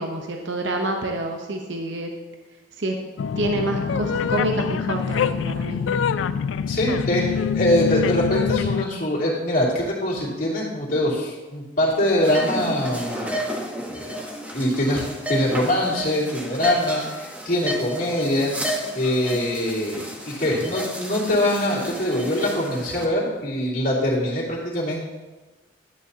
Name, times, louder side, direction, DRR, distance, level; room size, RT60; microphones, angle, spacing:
voice 1, 0.0-2.1 2.8-2.9 3.4-5.8, right 1 dB, 70° right, 2 dB, 0.9 m, -27 dB
sound 1, 3.2-8.8, left 7 dB, 80° left, 0.3 m, -25 dB
voice 2, 6.7-13.4 13.9-14.1 14.5-18.5 18.9-25.1, left 1 dB, 50° left, -7 dB, 2.7 m, -23 dB
sound 2, 12.2-23.1, equal, 10° right, 1.0 m, -32 dB
11.5 x 8.8 x 2.8 m, 1.2 s
head